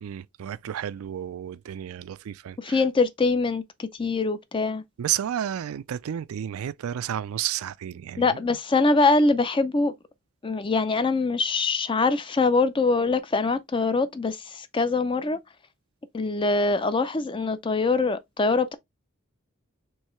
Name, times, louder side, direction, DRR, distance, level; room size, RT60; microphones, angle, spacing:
voice 1, 0.0-2.8 5.0-8.6, right 10 dB, 75° right, 0.3 m, -32 dB
voice 2, 2.6-4.8 8.2-9.9 10.4-15.4 16.1-18.7, left 3 dB, 25° left, 0.4 m, -23 dB
4.6 x 3.2 x 3.1 m
head